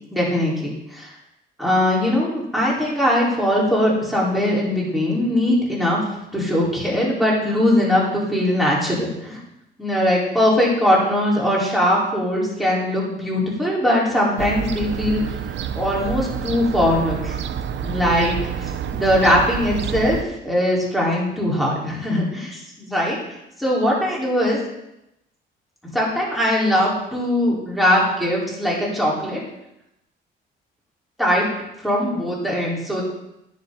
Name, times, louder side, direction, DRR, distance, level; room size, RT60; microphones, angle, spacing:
voice 1, 0.1-1.1 1.6-6.0 6.3-9.4 9.8-15.2 15.7-17.3 17.8-20.2 20.4-23.2 23.6-24.6 25.8-29.4 31.2-31.4 31.8-33.0, left 1 dB, ahead, -5 dB, 4.8 m, -20 dB
Fowl / Gull seagull, 14.4-20.2, right 8 dB, 65° right, 0.8 m, -28 dB
11.0 x 10.5 x 4.2 m, 0.85 s
cardioid pair, 90°, 20 cm